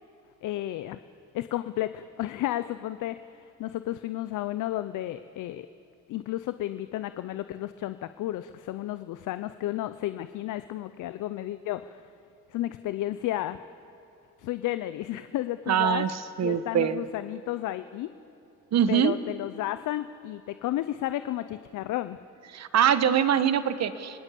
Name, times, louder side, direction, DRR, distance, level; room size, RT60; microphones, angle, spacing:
voice 1, 0.4-1.0 1.3-5.7 6.1-12.1 12.5-13.6 14.4-16.1 16.4-18.1 18.9-22.2, left 14 dB, 80° left, 12 dB, 0.7 m, -32 dB
voice 2, 15.7-17.0 18.7-19.1 22.5-24.2, right 9 dB, 60° right, 12 dB, 1.3 m, -24 dB
30.0 x 19.5 x 8.4 m, 2.8 s
cardioid pair, 90°, 30 cm